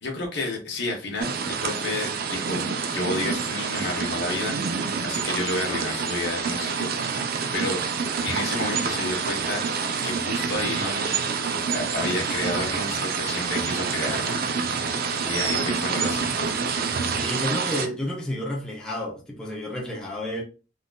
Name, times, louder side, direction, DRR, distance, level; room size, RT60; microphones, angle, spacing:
voice 1, 0.0-2.6 2.9-7.3 7.5-7.8 8.2-9.7 10.0-11.1 11.7-14.5 15.2-16.6, left 2 dB, 60° left, 1.0 m, -31 dB
sound 1, 1.2-17.9, right 5 dB, 50° right, 0.4 m, -27 dB
voice 2, 17.0-20.4, left 1 dB, 5° left, 0.6 m, -31 dB
3.6 x 2.5 x 2.2 m
head